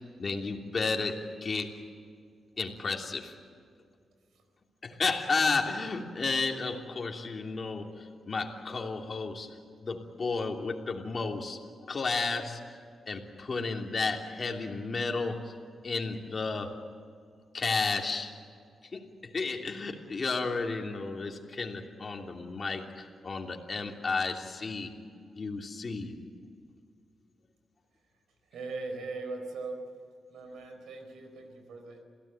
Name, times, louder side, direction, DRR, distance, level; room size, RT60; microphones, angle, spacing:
voice 1, 0.2-1.8 2.6-3.3 4.8-9.5 9.8-11.6 11.9-12.6 13.1-15.5 15.8-16.8 17.5-18.3 18.9-24.9 25.3-26.1, left 4 dB, 40° left, 2 dB, 3.1 m, -32 dB
voice 2, 28.5-29.8 30.3-32.0, right 3 dB, 90° right, 6 dB, 4.4 m, -39 dB
28.0 x 17.0 x 9.0 m, 2.2 s
cardioid pair, 85°, 0 cm